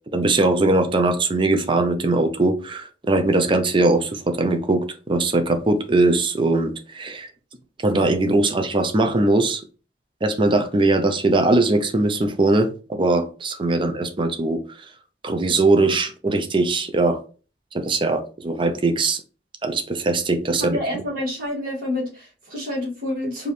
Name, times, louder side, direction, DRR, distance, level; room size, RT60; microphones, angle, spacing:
voice 1, 0.1-7.3 7.8-9.6 10.2-14.9 15.2-17.2 17.7-19.2 19.6-21.0, right 2 dB, 30° right, 7 dB, 0.5 m, -21 dB
voice 2, 20.6-23.5, left 1 dB, 50° right, -3 dB, 2.0 m, -28 dB
4.7 x 2.7 x 3.2 m, 0.36 s
head